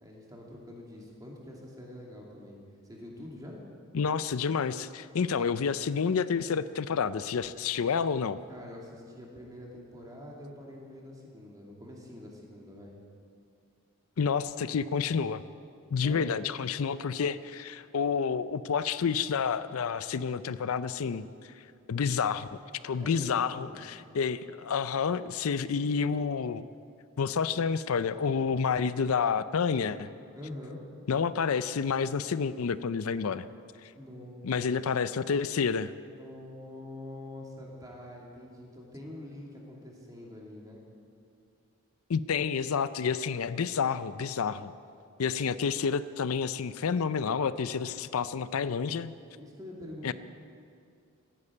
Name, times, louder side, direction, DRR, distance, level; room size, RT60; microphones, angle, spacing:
voice 1, 0.0-2.6 2.8-3.6 8.5-12.9 16.0-16.3 22.9-23.8 30.3-30.8 33.9-34.7 36.1-40.8 49.4-50.1, left 1 dB, 15° right, -2 dB, 2.7 m, -45 dB
voice 2, 3.9-8.4 14.2-15.4 15.9-21.2 21.9-22.5 22.8-26.6 27.2-30.1 31.1-33.5 33.8-33.9 34.4-35.9 42.1-44.7 45.2-49.1 50.0-50.1, left 6 dB, 80° left, 15 dB, 0.5 m, -29 dB
15.0 x 11.0 x 8.6 m, 2.4 s
head